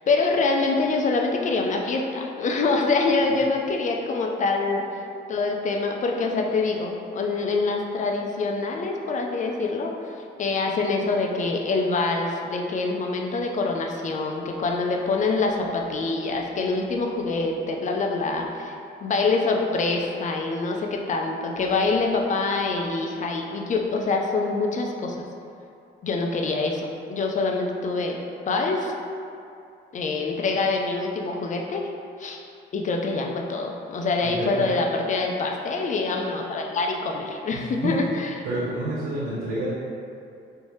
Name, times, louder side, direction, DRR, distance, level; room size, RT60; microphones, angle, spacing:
voice 1, 0.1-4.8 5.3-18.7 19.0-25.3 26.0-28.2 28.5-28.9 29.9-31.9 32.2-32.4 32.7-38.4, left 3 dB, 40° left, 2 dB, 0.4 m, -25 dB
voice 2, 34.2-34.7 37.5-37.9 38.4-39.7, right 1 dB, 75° right, -9 dB, 0.7 m, -29 dB
3.2 x 2.7 x 3.0 m, 2.5 s
cardioid pair, 90°, 20 cm